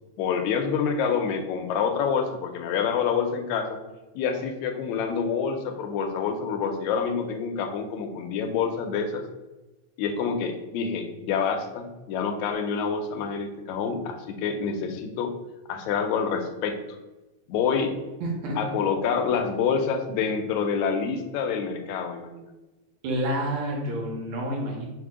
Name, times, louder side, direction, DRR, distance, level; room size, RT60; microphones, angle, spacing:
voice 1, 0.2-3.8 4.2-9.2 10.0-15.3 15.7-16.8 17.5-17.9 18.6-22.5, left 6 dB, 80° left, 5 dB, 1.8 m, -27 dB
voice 2, 18.2-18.6 23.0-24.9, right 1 dB, 75° right, -1 dB, 2.2 m, -29 dB
5.0 x 2.0 x 4.7 m, 1.1 s
omnidirectional pair, 3.4 m